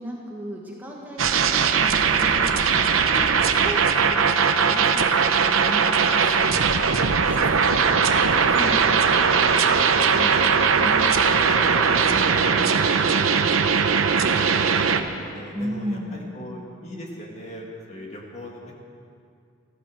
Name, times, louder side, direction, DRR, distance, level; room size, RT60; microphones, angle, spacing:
voice 1, 0.0-9.3 10.1-14.3 15.5-16.4, equal, 10° right, -3 dB, 1.5 m, -36 dB
sound 1, 1.2-15.0, right 6 dB, 85° right, 0.8 m, -20 dB
voice 2, 9.2-9.8 14.9-18.7, left 1 dB, 35° left, -1 dB, 2.2 m, -40 dB
15.0 x 14.5 x 6.4 m, 2.4 s
head